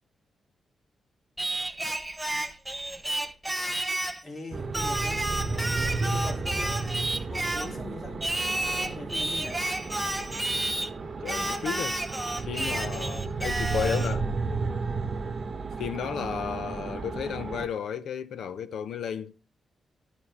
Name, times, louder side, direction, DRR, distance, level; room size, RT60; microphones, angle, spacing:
Singing, 1.4-4.2 4.7-7.8 8.2-10.9 11.3-14.2, right 1 dB, 10° right, 0.9 m, -31 dB
voice 1, 4.2-6.9 7.3-8.3 8.8-9.7, left 2 dB, 30° left, 3.5 m, -41 dB
sound 1, 4.5-17.7, right 3 dB, 35° right, 1.0 m, -33 dB
voice 2, 11.2-12.0 12.5-14.3 15.8-19.4, left 8 dB, 80° left, 0.8 m, -33 dB
13.5 x 4.8 x 3.6 m
wide cardioid pair, 125°, 0 cm